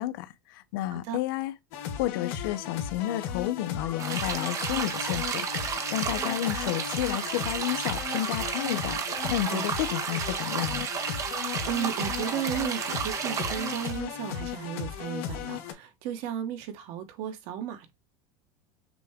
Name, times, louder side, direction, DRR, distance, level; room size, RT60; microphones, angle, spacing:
voice 1, 0.0-1.5 2.0-9.0 9.3-10.9, left 14 dB, 75° left, 0.6 m, -31 dB
sound 1, 1.7-15.7, left 9 dB, 60° left, 1.0 m, -36 dB
sound 2, 3.7-8.8 9.1-14.6, left 6 dB, 30° left, 0.8 m, -50 dB
sound 3, 4.0-14.0, right 7 dB, 25° right, 0.6 m, -32 dB
voice 2, 11.2-17.9, right 10 dB, 55° right, 1.2 m, -34 dB
6.0 x 2.3 x 3.5 m
supercardioid pair, 145°, 12 cm